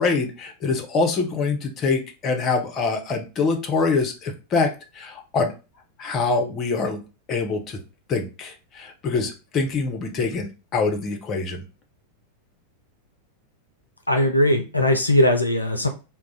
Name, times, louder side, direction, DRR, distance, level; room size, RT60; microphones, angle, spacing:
voice 1, 0.0-4.7 4.9-5.5 6.0-7.0 7.3-7.8 8.1-11.6, left 4 dB, 30° left, 4 dB, 0.6 m, -24 dB
voice 2, 14.1-15.9, left 1 dB, 85° left, 4 dB, 0.4 m, -19 dB
2.3 x 2.0 x 3.9 m, 0.31 s
figure-of-eight pair, 90°, 0 cm